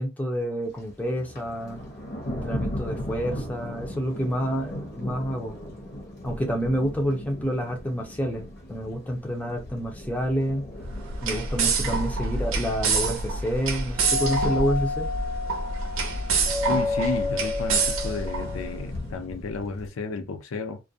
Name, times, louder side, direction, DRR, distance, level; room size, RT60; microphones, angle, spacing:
voice 1, 0.0-1.8 2.4-5.6 6.2-10.7 11.2-15.1, equal, 10° left, 0.4 m, -28 dB
Thunder, 0.7-19.9, left 1 dB, 55° left, 0.8 m, -39 dB
sound 1, 10.8-18.9, right 4 dB, 80° right, 0.6 m, -27 dB
Doorbell, 14.0-18.8, left 4 dB, 25° right, 0.7 m, -30 dB
voice 2, 16.7-20.8, left 3 dB, 85° left, 0.5 m, -32 dB
2.3 x 2.1 x 2.6 m
head